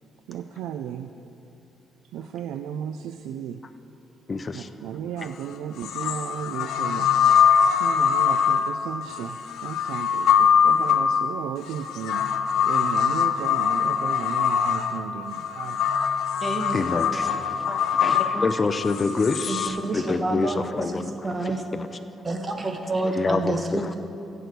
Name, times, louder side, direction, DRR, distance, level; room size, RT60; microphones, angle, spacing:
voice 1, 0.3-1.1 2.1-3.6 4.5-7.1 7.6-12.3 12.6-15.9, right 9 dB, 90° right, 8 dB, 0.3 m, -35 dB
voice 2, 4.3-4.7 16.7-21.1 21.4-21.9 23.0-23.9, left 3 dB, 30° left, 9 dB, 0.6 m, -27 dB
sound 1, 5.2-5.3 5.8-19.7, left 7 dB, 75° left, 0.7 m, -23 dB
voice 3, 16.4-16.8 19.5-19.6 19.8-21.6 22.2-24.0, right 2 dB, 25° right, 4 dB, 1.3 m, -28 dB
15.0 x 8.0 x 4.6 m, 2.9 s
cardioid pair, 90°, 0 cm